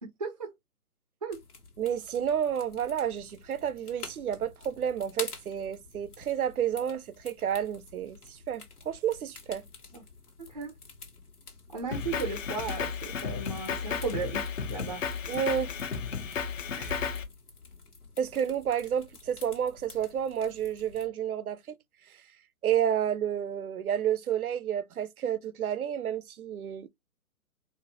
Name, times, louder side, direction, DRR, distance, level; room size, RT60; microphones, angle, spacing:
voice 1, 0.0-0.5 1.2-1.4 9.9-10.0 10.5-10.7 11.7-15.0 16.7-17.2, right 4 dB, 30° right, 0.4 m, -36 dB
sound 1, 1.3-21.1, left 4 dB, 80° left, 1.3 m, -49 dB
voice 2, 1.8-9.7 15.3-15.8 18.2-21.8 22.1-22.2 22.6-26.9, right 9 dB, 75° right, 0.6 m, -30 dB
Drum kit, 11.9-17.2, left 6 dB, 60° left, 0.8 m, -33 dB
4.1 x 2.0 x 2.7 m
figure-of-eight pair, 135°, 44 cm